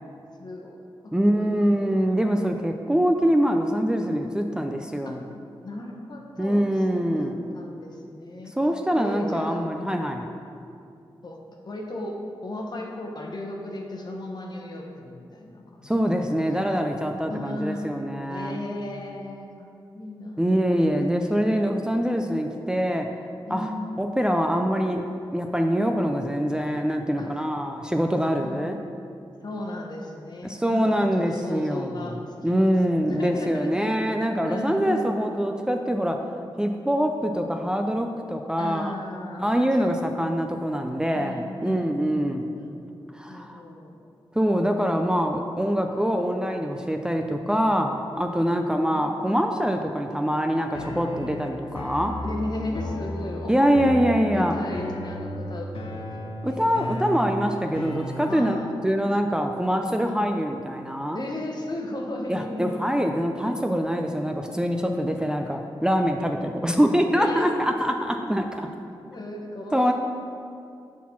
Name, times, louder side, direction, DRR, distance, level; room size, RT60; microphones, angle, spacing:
voice 1, 0.4-2.0 5.0-5.1 5.6-8.5 8.9-10.0 11.2-15.9 17.3-17.9 18.3-19.7 19.9-20.7 21.6-21.7 23.5-23.9 27.2-27.3 28.4-28.7 29.4-32.7 33.0-34.2 34.5-35.1 38.6-39.9 41.1-42.9 43.2-44.0 48.5-49.3 52.2-53.6 53.8-55.7 56.0-57.3 58.3-58.7 61.1-62.8 67.2-67.5 69.1-69.9, left 1 dB, 50° left, 1 dB, 1.1 m, -36 dB
voice 2, 1.1-5.3 6.4-7.4 8.6-10.2 15.8-18.6 20.4-23.1 23.5-23.7 24.0-25.1 25.3-28.8 30.4-32.1 32.4-36.2 36.6-38.9 39.4-42.5 43.1-43.6 44.3-52.1 53.5-54.5 56.4-58.6 58.8-61.2 62.3-68.7 69.7-69.9, equal, 10° right, 4 dB, 0.4 m, -24 dB
sound 1, 50.7-58.7, left 1 dB, 80° left, 0.7 m, -35 dB
6.3 x 4.2 x 5.7 m, 2.5 s
cardioid pair, 65°, 9 cm